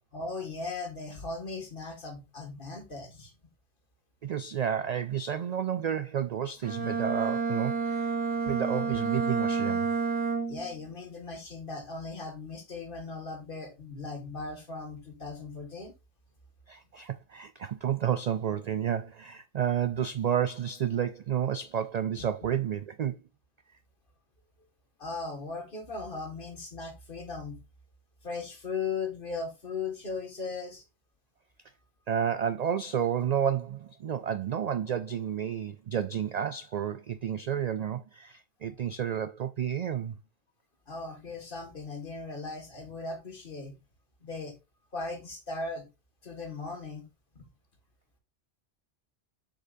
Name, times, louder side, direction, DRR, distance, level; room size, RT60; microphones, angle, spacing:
voice 1, 0.1-3.3 10.5-15.9 25.0-27.6 28.2-30.8 40.9-43.8 44.2-44.6 44.9-45.9 46.2-47.1 47.4-47.5, left 4 dB, 50° left, 2.1 m, -38 dB
voice 2, 4.2-8.1 8.4-9.9 16.7-23.2 32.1-40.2, right 9 dB, 60° right, 0.4 m, -31 dB
Bowed string instrument, 6.6-10.7, right 5 dB, 45° right, 1.5 m, -29 dB
7.7 x 6.7 x 2.6 m
omnidirectional pair, 1.2 m